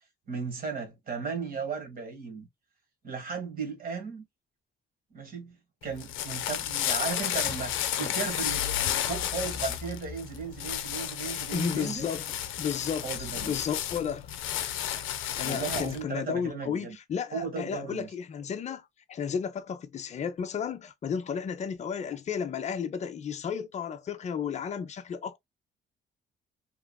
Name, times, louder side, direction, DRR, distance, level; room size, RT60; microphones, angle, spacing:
voice 1, 0.3-2.5 3.0-4.2 5.1-5.5 5.8-12.1 13.0-13.5 15.4-17.0 17.3-18.1, right 5 dB, 45° right, 1.4 m, -36 dB
sound 1, 5.8-16.0, left 11 dB, 85° left, 0.5 m, -32 dB
voice 2, 11.5-14.3 15.4-25.4, left 7 dB, 35° left, 0.5 m, -33 dB
2.9 x 2.4 x 2.2 m
cardioid pair, 90°, 20 cm